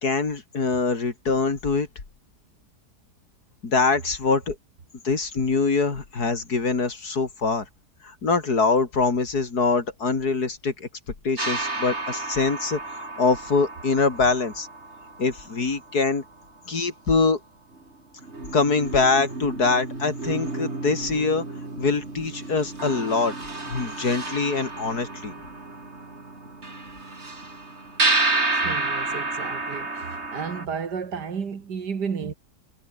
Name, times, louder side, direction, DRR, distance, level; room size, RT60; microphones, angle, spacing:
voice 1, 0.0-1.9 3.6-4.6 5.0-7.7 8.0-10.9 11.2-14.7 15.2-16.2 16.7-17.4 18.5-21.4 21.8-23.3 23.7-25.3, left 4 dB, 65° left, 3.6 m, -24 dB
sound 1, 11.4-16.2 17.7-17.8 18.2-30.7, right 2 dB, 40° right, 4.0 m, -31 dB
voice 2, 28.5-32.3, right 6 dB, 75° right, 2.6 m, -32 dB
omnidirectional pair, 1.8 m